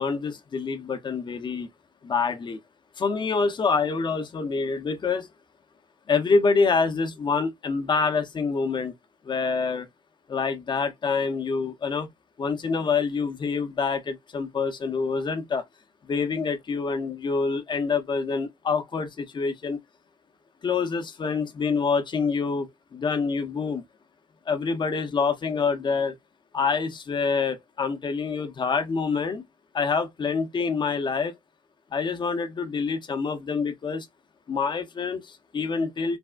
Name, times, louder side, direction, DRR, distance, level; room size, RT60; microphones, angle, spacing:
voice 1, 0.0-1.7 2.0-2.6 3.0-5.3 6.1-8.9 9.2-9.9 10.3-12.1 12.4-15.6 16.1-19.8 20.6-22.7 22.9-23.8 24.5-26.1 26.5-29.4 29.7-31.3 31.9-34.1 34.5-36.2, left 5 dB, 35° left, 0.6 m, -26 dB
3.3 x 2.0 x 2.2 m
supercardioid pair, 75°, 14 cm